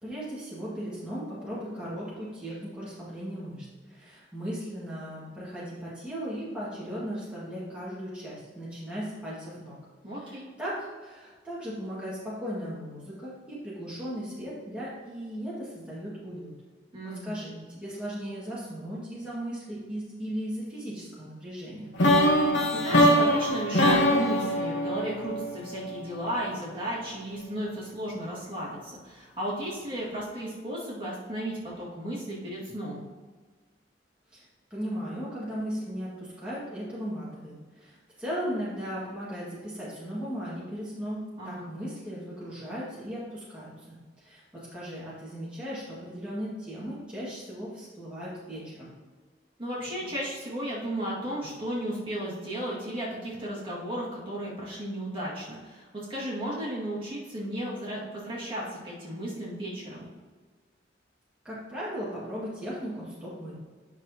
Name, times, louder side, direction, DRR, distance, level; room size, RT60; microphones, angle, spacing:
voice 1, 0.0-9.8 10.1-16.5 17.0-21.9 34.3-48.9 61.4-63.5, equal, 5° right, -9 dB, 1.8 m, -37 dB
voice 2, 10.0-10.5 16.9-17.3 22.7-33.0 41.4-41.7 49.6-60.1, right 1 dB, 30° right, -7 dB, 2.0 m, -34 dB
sound 1, 22.0-26.0, equal, 75° left, 0.9 m, -23 dB
9.6 x 6.0 x 2.9 m, 1.4 s
head